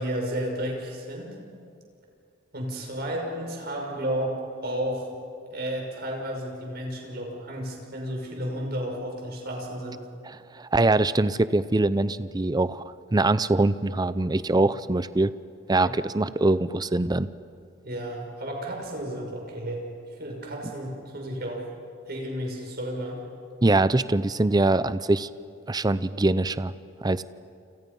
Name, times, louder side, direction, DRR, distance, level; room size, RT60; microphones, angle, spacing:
voice 1, 0.0-1.4 2.5-5.1 5.5-10.1 15.8-15.9 17.8-19.9 20.2-21.7 22.1-23.2, equal, 55° right, 1 dB, 6.0 m, -32 dB
voice 2, 10.3-12.8 13.1-15.3 15.7-17.3 23.6-25.3 25.7-26.7 27.0-27.2, right 2 dB, 20° right, 15 dB, 0.5 m, -23 dB
29.0 x 28.0 x 5.5 m, 2.4 s
head